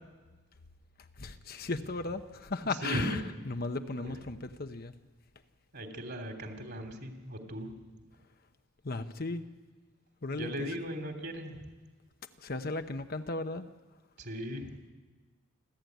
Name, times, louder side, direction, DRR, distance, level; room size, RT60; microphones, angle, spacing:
voice 1, 1.2-3.2 3.5-4.9 8.8-9.4 10.2-10.7 12.4-13.6, left 3 dB, 45° left, 8 dB, 0.8 m, -36 dB
voice 2, 2.6-3.2 3.9-4.1 5.7-7.7 10.3-11.6 14.2-14.7, equal, 45° right, 5 dB, 2.9 m, -38 dB
28.0 x 13.0 x 9.3 m, 1.3 s
head